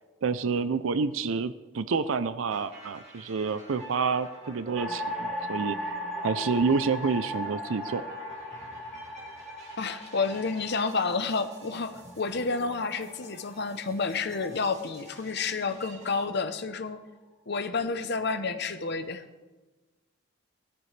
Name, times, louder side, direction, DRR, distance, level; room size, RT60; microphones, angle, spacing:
voice 1, 0.2-8.0, right 5 dB, 80° right, 13 dB, 0.5 m, -28 dB
sound 1, 2.5-16.2, right 1 dB, 35° right, 2.7 m, -48 dB
sound 2, 4.7-15.1, equal, ahead, 3.5 m, -38 dB
voice 2, 9.8-17.0 17.5-19.2, left 4 dB, 55° left, 10 dB, 0.8 m, -30 dB
17.5 x 13.5 x 3.3 m, 1.2 s
head